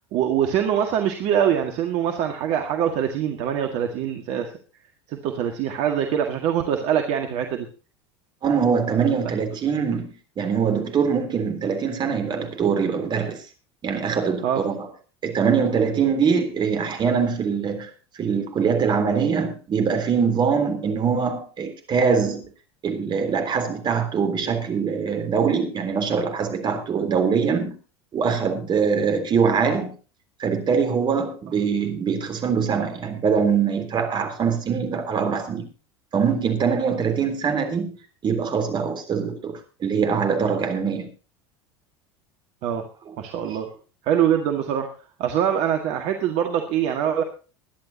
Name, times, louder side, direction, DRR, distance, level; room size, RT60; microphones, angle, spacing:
voice 1, 0.1-4.5 5.1-7.7 14.4-14.6 42.6-42.9 43.2-43.7 44.0-44.9 45.2-47.2, right 9 dB, 55° right, 1.8 m, -23 dB
voice 2, 8.4-13.4 13.8-14.9 15.2-22.4 22.8-27.8 28.1-29.9 30.4-35.7 36.1-38.0 38.2-41.1, right 6 dB, 35° right, 3.5 m, -23 dB
22.0 x 10.5 x 2.9 m
hypercardioid pair, 80°, 13 cm